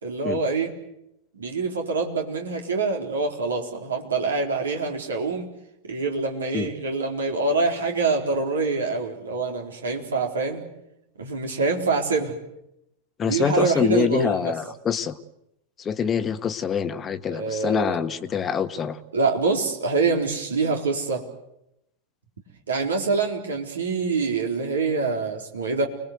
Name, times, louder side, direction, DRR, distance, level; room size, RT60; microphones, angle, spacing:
voice 1, 0.0-0.8 1.3-5.5 5.8-10.6 11.2-12.4 13.2-14.5 17.3-18.0 19.1-21.3 22.7-25.9, right 4 dB, 70° right, 2 dB, 4.3 m, -25 dB
voice 2, 13.2-15.2 15.8-19.0, left 7 dB, 25° left, 11 dB, 1.4 m, -25 dB
29.5 x 20.5 x 8.1 m, 0.83 s
figure-of-eight pair, 90°, 0 cm